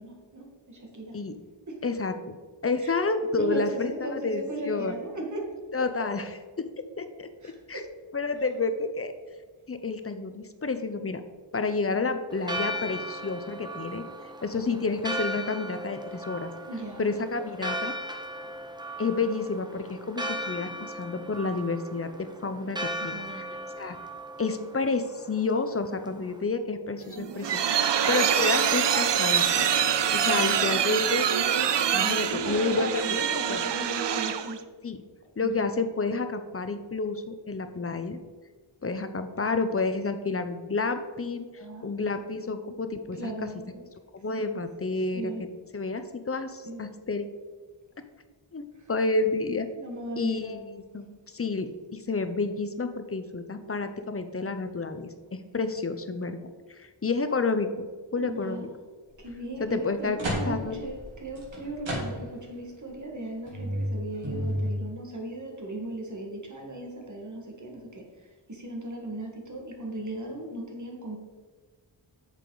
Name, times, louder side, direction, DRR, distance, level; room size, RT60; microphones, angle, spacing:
voice 1, 0.0-1.1 1.7-1.8 2.8-2.9 3.4-5.5 5.8-5.9 7.4-7.9 16.7-17.1 22.9-24.2 30.2-30.4 32.3-34.6 35.4-35.7 41.5-42.0 43.1-43.8 44.8-45.4 46.6-46.8 48.7-48.9 49.8-50.6 58.2-58.7 59.2-71.2, right 1 dB, 40° right, 0 dB, 1.8 m, -37 dB
voice 2, 1.8-2.4 2.6-4.9 5.7-6.2 6.6-6.7 7.0-7.3 7.7-7.8 8.1-9.1 9.7-11.2 11.5-14.0 14.4-16.5 17.0-17.9 19.0-23.5 23.8-24.0 24.4-29.7 30.1-31.3 31.9-33.2 33.5-33.7 34.8-35.0 35.4-38.2 38.8-41.5 41.8-43.3 44.1-45.3 45.7-47.3 48.5-49.7 50.2-56.4 56.7-57.9 58.1-58.7 59.6-60.2 60.4-60.8, left 3 dB, 30° left, 9 dB, 0.6 m, -30 dB
Church bell, 12.3-26.4, right 1 dB, 10° right, 0.8 m, -37 dB
sound 1, 27.0-34.6, right 8 dB, 65° right, 0.6 m, -25 dB
sound 2, 59.1-59.3 59.8-62.5 63.0-63.1 63.5-64.7, equal, 85° right, 2.7 m, -32 dB
8.1 x 6.7 x 3.9 m, 1.4 s
wide cardioid pair, 95°, 45 cm